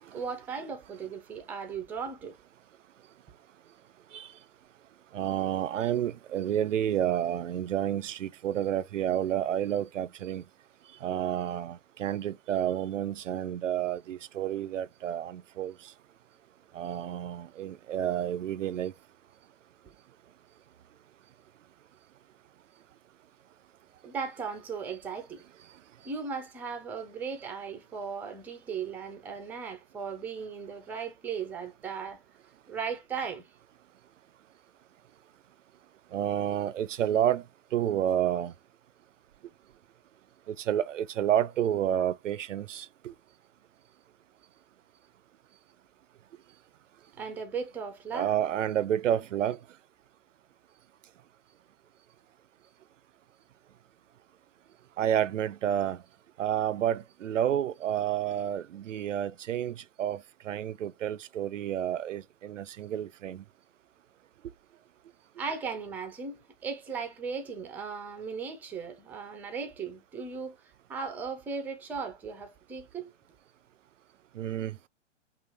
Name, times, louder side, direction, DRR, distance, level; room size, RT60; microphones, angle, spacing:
voice 1, 0.1-2.4 24.0-25.4 26.0-32.2 32.7-33.4 47.2-48.3 65.4-70.6 70.9-73.1, right 5 dB, 5° right, 0.5 m, -37 dB
voice 2, 5.1-10.4 11.0-15.9 16.7-18.9 36.1-37.4 37.7-38.5 40.5-43.1 48.1-49.6 55.0-56.0 56.4-63.4 74.3-74.8, right 10 dB, 75° right, 0.5 m, -30 dB
5.5 x 2.4 x 3.4 m
hypercardioid pair, 130°, 38 cm